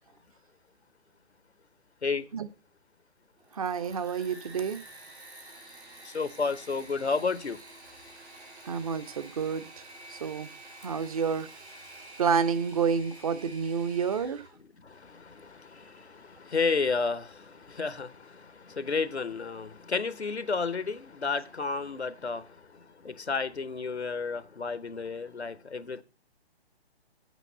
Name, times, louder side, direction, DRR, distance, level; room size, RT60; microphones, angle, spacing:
Engine / Mechanisms, 3.4-14.6, right 1 dB, 90° right, 3.5 m, -49 dB
voice 1, 3.5-4.8 8.7-9.8 10.1-10.5 10.8-11.5 12.2-14.4, right 6 dB, 35° right, 0.6 m, -29 dB
voice 2, 6.0-7.6 14.8-26.0, left 4 dB, 90° left, 0.8 m, -32 dB
8.3 x 4.6 x 7.4 m
figure-of-eight pair, 140°, 32 cm